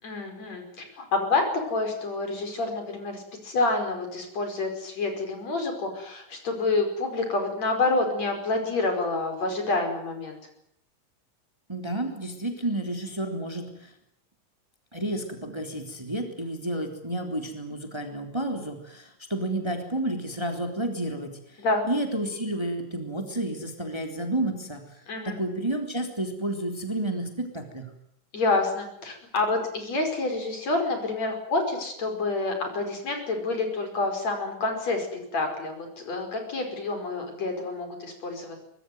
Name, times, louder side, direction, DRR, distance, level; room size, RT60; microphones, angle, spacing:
voice 1, 0.0-10.4 21.6-21.8 25.1-25.4 28.3-35.1 35.3-38.6, left 3 dB, 60° left, 5 dB, 6.5 m, -28 dB
voice 2, 11.7-13.9 14.9-21.6 21.9-24.8 25.2-27.9, right 1 dB, 10° right, 4 dB, 3.4 m, -31 dB
24.0 x 21.0 x 9.4 m, 0.72 s
omnidirectional pair, 3.3 m